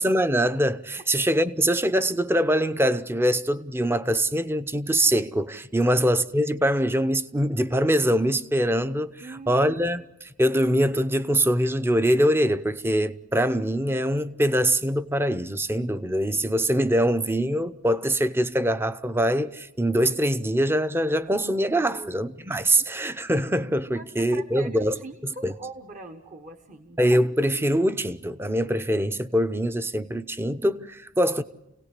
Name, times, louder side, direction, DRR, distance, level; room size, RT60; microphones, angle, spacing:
voice 1, 0.0-9.1 9.5-25.5 27.0-31.4, equal, 10° right, 0.8 m, -23 dB
voice 2, 9.2-9.8 21.9-22.2 23.9-27.0, right 2 dB, 40° right, 1.4 m, -42 dB
28.5 x 18.0 x 8.3 m
head